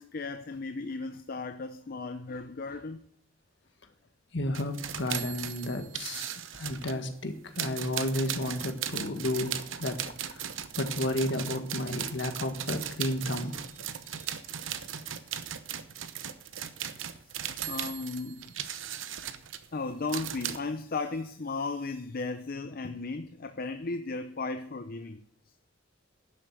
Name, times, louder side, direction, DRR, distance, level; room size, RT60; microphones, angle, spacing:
voice 1, 0.0-3.1 12.0-12.1 13.5-15.9 16.9-18.6 19.7-25.3, left 3 dB, 50° left, 0.6 m, -37 dB
voice 2, 4.3-13.6, left 1 dB, 65° left, 1.7 m, -32 dB
sound 1, 4.5-7.0 7.6-20.6, right 9 dB, 80° right, 0.9 m, -37 dB
11.5 x 7.7 x 7.5 m
head